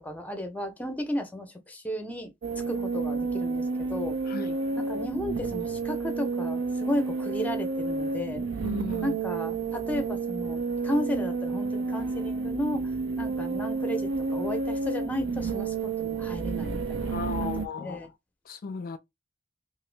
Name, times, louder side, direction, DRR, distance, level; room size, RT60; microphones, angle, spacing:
voice 1, 0.0-2.3 2.7-3.6 3.9-4.2 4.8-8.4 9.0-12.9 13.2-18.1, left 1 dB, 10° left, 0.6 m, -34 dB
sound 1, 2.4-17.7, right 4 dB, 75° right, 0.5 m, -30 dB
voice 2, 4.3-4.6 8.6-9.1 17.0-18.1 18.5-19.0, left 4 dB, 50° left, 0.3 m, -36 dB
2.9 x 2.4 x 3.2 m
head